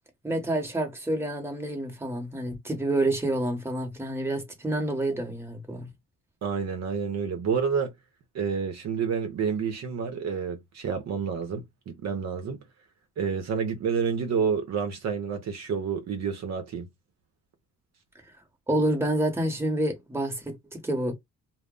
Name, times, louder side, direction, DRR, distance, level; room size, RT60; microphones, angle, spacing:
voice 1, 0.2-5.9 18.7-21.1, right 1 dB, 10° right, 1.0 m, -28 dB
voice 2, 6.4-7.9 8.3-12.6 13.2-16.9, right 6 dB, 60° right, 0.7 m, -29 dB
2.1 x 2.0 x 3.6 m
cardioid pair, 90°, 30 cm